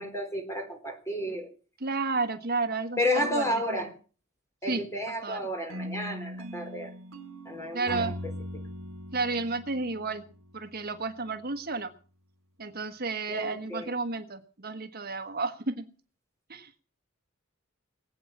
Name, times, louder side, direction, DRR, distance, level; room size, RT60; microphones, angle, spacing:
voice 1, 0.0-1.5 3.0-3.9 4.6-6.9 7.5-8.1 8.5-8.6 13.3-13.9, left 1 dB, 15° left, 5 dB, 3.7 m, -31 dB
voice 2, 1.8-3.6 4.7-4.8 5.2-5.4 7.7-8.2 9.1-10.2 10.5-11.9 12.6-15.8 16.5-16.8, right 3 dB, 50° right, 8 dB, 1.3 m, -32 dB
sound 1, 5.7-10.8, equal, 75° right, 2.8 m, -40 dB
20.5 x 8.7 x 7.2 m, 0.39 s
head